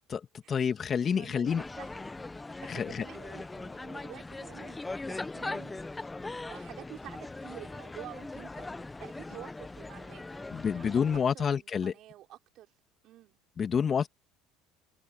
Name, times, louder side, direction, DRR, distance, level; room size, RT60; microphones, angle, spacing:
voice 1, 0.5-1.6 2.7-3.0 10.5-11.9 13.6-14.1, left 7 dB, 40° left, 2.6 m, -28 dB
voice 2, 1.0-6.1 6.5-11.0 11.3-12.7 13.0-13.4, right 14 dB, 60° right, 5.9 m, -49 dB
sound 1, 1.5-11.2, left 2 dB, 15° left, 1.4 m, -40 dB
hypercardioid pair, 75°, 0 cm